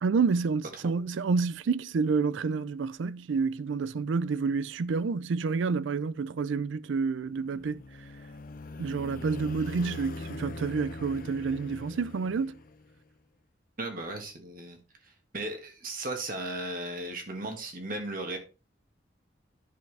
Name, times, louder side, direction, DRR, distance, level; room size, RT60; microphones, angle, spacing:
voice 1, 0.0-7.8 8.8-12.6, right 4 dB, 75° right, 0.4 m, -29 dB
sound 1, 7.3-13.0, left 2 dB, 45° left, 0.7 m, -42 dB
voice 2, 13.8-14.8 15.0-18.4, right 2 dB, 45° right, 1.7 m, -36 dB
10.5 x 5.9 x 3.3 m
head